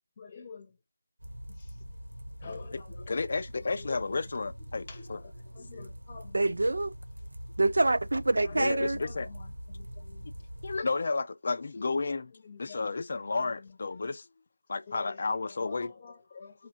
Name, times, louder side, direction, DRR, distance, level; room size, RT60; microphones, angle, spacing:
voice 1, 0.2-0.8 1.5-1.8 2.4-3.3 3.8-4.2 4.8-6.5 8.4-10.3 12.3-14.1 14.9-16.7, left 5 dB, 20° left, 0.7 m, -49 dB
sound 1, 1.2-10.8, equal, 80° right, 1.2 m, -44 dB
voice 2, 3.1-5.2 8.5-9.3 10.6-12.3 12.6-14.3 14.7-15.9, left 3 dB, 40° left, 0.4 m, -32 dB
voice 3, 6.3-6.9 7.6-9.0, right 2 dB, 65° right, 0.3 m, -26 dB
4.2 x 2.3 x 4.2 m
figure-of-eight pair, 170°, 0 cm